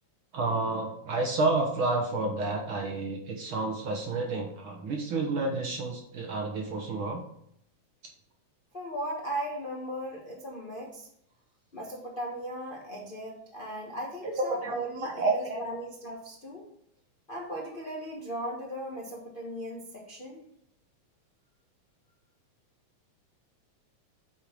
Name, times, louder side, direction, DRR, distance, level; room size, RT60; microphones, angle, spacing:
voice 1, 0.3-7.2 14.2-15.6, right 3 dB, 60° right, 2 dB, 1.4 m, -30 dB
voice 2, 8.7-11.1 11.7-16.7 17.3-20.4, right 1 dB, 80° left, -3 dB, 0.4 m, -37 dB
8.3 x 4.5 x 5.1 m, 0.72 s
omnidirectional pair, 3.3 m